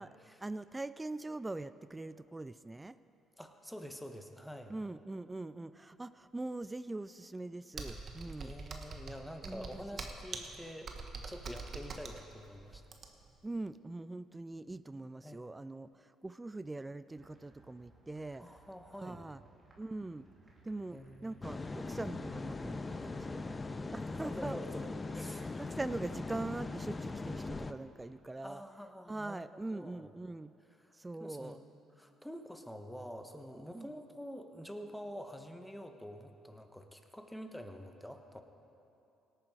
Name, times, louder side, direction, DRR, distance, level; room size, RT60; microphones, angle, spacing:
voice 1, 0.0-3.0 4.7-8.5 9.4-10.0 13.4-18.5 19.0-19.4 19.8-20.3 20.6-23.6 23.9-24.6 25.4-28.6 29.1-30.5 30.9-31.6 33.7-33.9, right 2 dB, 20° right, 15 dB, 0.3 m, -42 dB
voice 2, 3.4-4.8 8.2-12.8 15.2-15.5 18.4-19.2 20.9-21.7 24.2-24.8 25.1-25.7 28.4-30.1 30.8-30.9 31.2-31.6 32.0-38.4, equal, 5° left, 6 dB, 1.2 m, -47 dB
Computer keyboard, 7.7-13.4, right 4 dB, 50° right, 1.4 m, -44 dB
sound 1, 17.1-25.1, right 2 dB, 35° right, 2.8 m, -63 dB
sound 2, 21.4-27.7, left 3 dB, 25° left, 0.6 m, -40 dB
17.5 x 9.0 x 4.9 m, 2.8 s
supercardioid pair, 60°, 0 cm